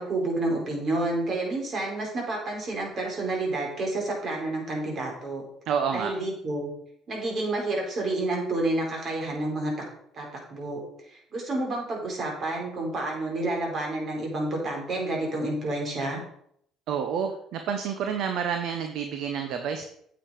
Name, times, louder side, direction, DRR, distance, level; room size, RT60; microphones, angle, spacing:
voice 1, 0.0-5.4 5.9-6.7 7.1-9.7 10.1-10.8 11.1-16.2, right 2 dB, 50° right, 0 dB, 4.3 m, -29 dB
voice 2, 5.7-6.1 16.9-19.8, right 7 dB, 70° right, 6 dB, 1.0 m, -29 dB
8.8 x 7.5 x 4.9 m, 0.69 s
hypercardioid pair, 65°, 0 cm